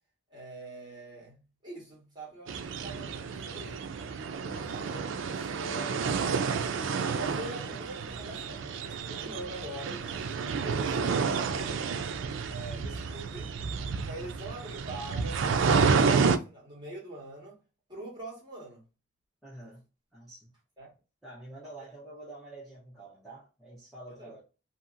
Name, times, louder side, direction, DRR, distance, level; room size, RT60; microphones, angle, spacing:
voice 1, 0.3-3.9 4.4-8.6 9.1-11.9 12.5-13.5 14.0-17.6 17.9-18.8 20.8-20.9 24.1-24.3, right 1 dB, 20° right, 1.5 m, -44 dB
sound 1, 2.5-16.4, right 5 dB, 75° right, 0.4 m, -30 dB
voice 2, 2.8-3.2 19.4-19.8 20.1-20.5 21.2-24.4, right 2 dB, ahead, 0.9 m, -47 dB
2.8 x 2.7 x 2.5 m
head